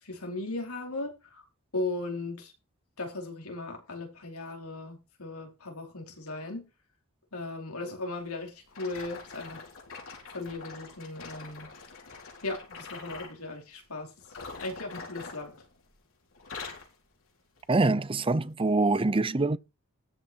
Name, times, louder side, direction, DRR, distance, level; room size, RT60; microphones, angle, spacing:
voice 1, 0.0-1.4 1.7-2.5 3.0-6.7 7.3-9.6 10.3-11.7 12.4-14.1 14.6-15.5, left 2 dB, 85° left, 4.8 m, -37 dB
sound 1, 8.7-13.4 14.2-16.0 16.3-16.9 17.6-17.8 18.4-18.5, left 4 dB, 65° left, 4.6 m, -44 dB
voice 2, 17.7-19.6, right 3 dB, 25° right, 0.7 m, -25 dB
13.0 x 5.9 x 4.6 m
head